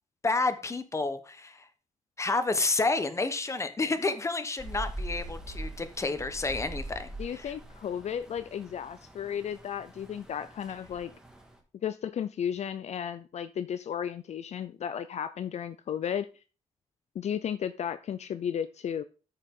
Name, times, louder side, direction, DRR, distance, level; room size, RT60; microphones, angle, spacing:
voice 1, 0.2-1.6 2.2-7.5, left 3 dB, 20° left, 11 dB, 1.1 m, -30 dB
Rain, 4.6-11.6, right 1 dB, 5° right, 1.8 m, -42 dB
voice 2, 7.2-11.1 11.8-16.3 17.1-19.0, left 8 dB, 55° left, 13 dB, 0.5 m, -34 dB
13.0 x 6.4 x 3.8 m, 0.35 s
wide cardioid pair, 150°, 13 cm